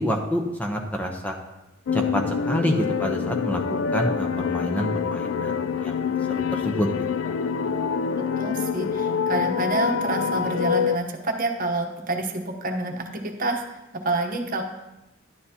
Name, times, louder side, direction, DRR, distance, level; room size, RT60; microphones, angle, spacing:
voice 1, 0.0-1.4 1.9-6.9, equal, 5° left, 3 dB, 0.7 m, -28 dB
sound 1, 1.9-11.0, left 6 dB, 65° left, 0.4 m, -26 dB
voice 2, 8.4-13.6 14.0-14.6, right 2 dB, 40° right, 4 dB, 1.0 m, -27 dB
11.0 x 10.0 x 2.9 m, 0.99 s
head